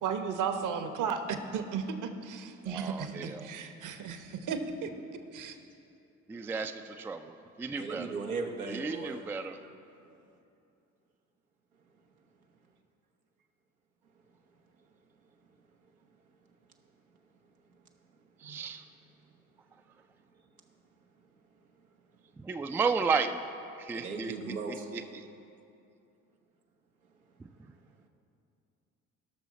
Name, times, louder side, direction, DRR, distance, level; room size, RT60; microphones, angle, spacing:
voice 1, 0.0-4.9 5.3-5.6, right 6 dB, 45° right, 8 dB, 0.9 m, -34 dB
voice 2, 2.7-3.5 6.3-8.2 8.7-9.6 18.4-18.8 22.4-23.4 23.8-24.3 24.7-25.3 27.4-27.5, right 5 dB, 5° right, 8 dB, 0.3 m, -33 dB
voice 3, 7.8-9.2 18.4-18.6 23.9-24.9, right 4 dB, 90° right, 2 dB, 0.9 m, -37 dB
17.5 x 6.1 x 4.1 m, 2.6 s
figure-of-eight pair, 50°, 42 cm